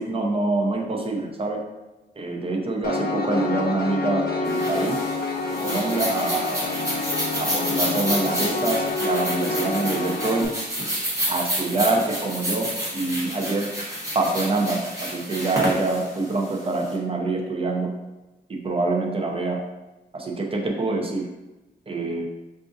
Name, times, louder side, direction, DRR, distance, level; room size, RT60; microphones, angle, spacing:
voice 1, 0.0-1.6 2.2-5.0 5.6-6.6 7.4-10.5 11.3-13.7 14.1-17.9 18.5-19.6 20.1-21.3 21.9-22.3, right 2 dB, 35° right, 0 dB, 0.6 m, -25 dB
Piano, 2.8-10.4, left 3 dB, 65° left, 0.5 m, -27 dB
sound 1, 4.4-16.9, equal, 20° right, 1.0 m, -30 dB
4.8 x 2.5 x 2.6 m, 1.1 s
wide cardioid pair, 150°, 17 cm